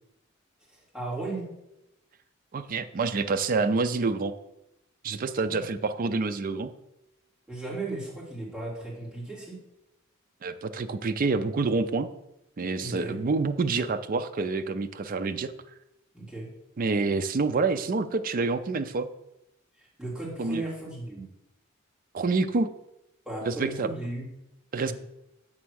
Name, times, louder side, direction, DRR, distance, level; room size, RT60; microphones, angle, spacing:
voice 1, 0.7-1.5 5.4-5.7 7.5-9.6 12.8-13.2 16.1-16.5 19.8-21.3 23.2-24.2 24.8-24.9, right 2 dB, 5° right, -8 dB, 2.6 m, -36 dB
voice 2, 2.5-4.3 5.0-6.7 10.4-12.1 12.6-15.5 16.8-19.1 20.4-20.6 22.1-22.7 23.4-23.9 24.7-24.9, right 4 dB, 40° right, 9 dB, 0.4 m, -27 dB
7.5 x 3.4 x 6.3 m, 0.90 s
head